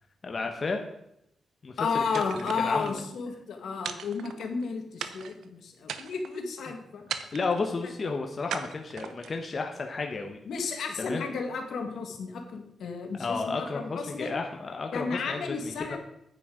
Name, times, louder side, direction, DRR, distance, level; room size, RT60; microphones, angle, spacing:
voice 1, 0.2-0.8 1.6-2.2 2.6-3.0 7.3-10.4 11.0-11.2 13.2-16.0, left 4 dB, 40° left, 3 dB, 1.1 m, -32 dB
voice 2, 1.8-7.0 7.8-8.1 10.5-14.3 14.9-16.0, left 5 dB, 75° left, 3 dB, 1.9 m, -33 dB
sound 1, 2.1-3.0 3.8-4.6 5.0-5.4 5.8-6.4 7.1-7.7 8.5-9.4, right 8 dB, 90° right, 0.8 m, -38 dB
9.7 x 8.9 x 5.0 m, 0.80 s
cardioid pair, 90°, 0 cm